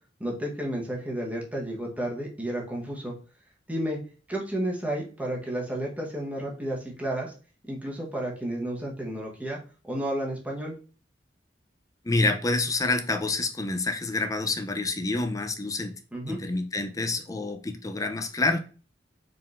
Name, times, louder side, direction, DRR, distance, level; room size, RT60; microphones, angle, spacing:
voice 1, 0.2-3.1 3.7-4.0 4.3-7.3 7.6-9.6 9.8-10.7 16.1-16.4, right 1 dB, 10° right, -2 dB, 1.1 m, -32 dB
voice 2, 12.0-15.9 16.3-18.6, left 2 dB, 20° left, 6 dB, 0.5 m, -27 dB
4.4 x 3.6 x 2.5 m, 0.37 s
head